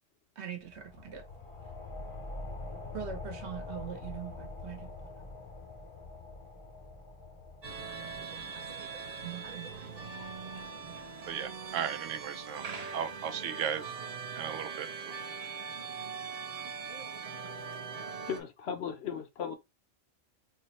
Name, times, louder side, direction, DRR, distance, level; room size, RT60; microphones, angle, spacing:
voice 1, 0.4-1.2 2.9-4.9 9.2-9.7, right 8 dB, 65° right, 1.2 m, -42 dB
sound 1, 0.6-11.8, left 2 dB, 35° left, 0.5 m, -46 dB
sound 2, 7.6-18.4, right 5 dB, 40° right, 0.6 m, -41 dB
voice 2, 11.3-14.0 14.3-15.2, right 8 dB, 80° right, 0.9 m, -36 dB
voice 3, 18.3-19.6, left 7 dB, 65° left, 0.8 m, -37 dB
3.5 x 2.1 x 4.1 m
omnidirectional pair, 1.3 m